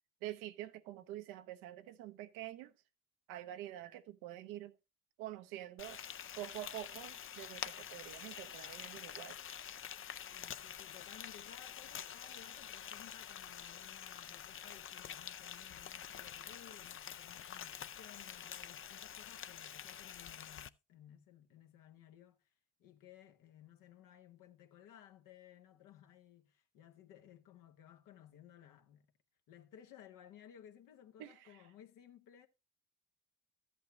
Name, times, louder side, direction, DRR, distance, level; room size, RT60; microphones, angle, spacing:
voice 1, 0.2-2.7 3.3-4.7 5.2-6.0 6.4-9.4 31.2-31.5, right 13 dB, 85° right, 0.9 m, -47 dB
Frying (food), 5.8-20.7, left 9 dB, 40° left, 0.5 m, -47 dB
voice 2, 10.3-22.5 22.8-29.1 29.5-32.5, left 10 dB, 75° left, 1.3 m, -59 dB
13.0 x 8.4 x 2.8 m
supercardioid pair, 60°, 33 cm